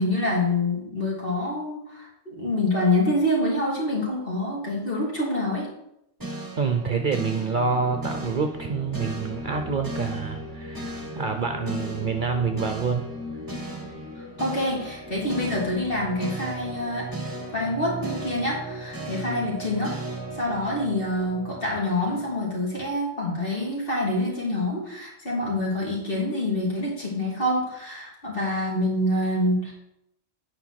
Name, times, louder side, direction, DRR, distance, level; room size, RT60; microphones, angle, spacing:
voice 1, 0.0-5.7 14.4-17.1 17.5-19.9 20.3-29.7, left 1 dB, 45° left, -4 dB, 3.3 m, -26 dB
sound 1, 6.2-22.5, right 1 dB, 15° right, 1.3 m, -36 dB
voice 2, 6.6-13.0, right 5 dB, 50° right, 5 dB, 0.8 m, -27 dB
9.1 x 5.2 x 5.8 m, 0.80 s
omnidirectional pair, 1.2 m